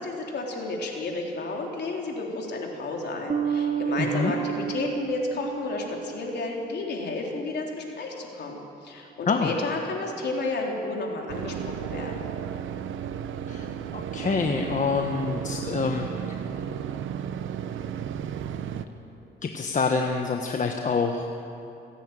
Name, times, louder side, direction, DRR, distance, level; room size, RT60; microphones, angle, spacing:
voice 1, 0.0-12.3, left 3 dB, 60° left, 0 dB, 3.9 m, -32 dB
sound 1, 3.3-6.6, right 9 dB, 40° right, 1.2 m, -30 dB
sound 2, 11.3-18.8, right 8 dB, 80° right, 0.9 m, -33 dB
voice 2, 13.9-16.1 18.7-18.8 19.4-21.3, left 4 dB, 40° left, 3 dB, 1.3 m, -26 dB
28.5 x 10.0 x 9.2 m, 2.8 s
cardioid pair, 90°, 20 cm